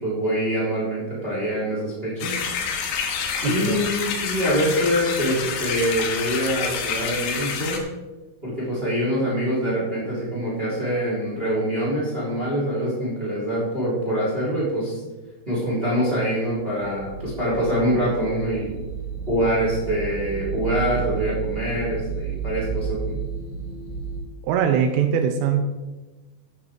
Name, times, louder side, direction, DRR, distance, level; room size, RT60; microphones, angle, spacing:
voice 1, 0.0-2.5 3.4-7.8 8.4-15.0 15.5-18.8 19.3-23.2, equal, 15° right, -6 dB, 3.0 m, -25 dB
sound 1, 2.2-7.8, left 6 dB, 80° left, 3.6 m, -28 dB
voice 2, 3.4-3.8 24.4-25.6, right 8 dB, 85° right, 5 dB, 2.5 m, -22 dB
sound 2, 16.7-24.2, right 7 dB, 45° right, 5.1 m, -32 dB
11.0 x 9.7 x 3.7 m, 1.1 s
omnidirectional pair, 5.6 m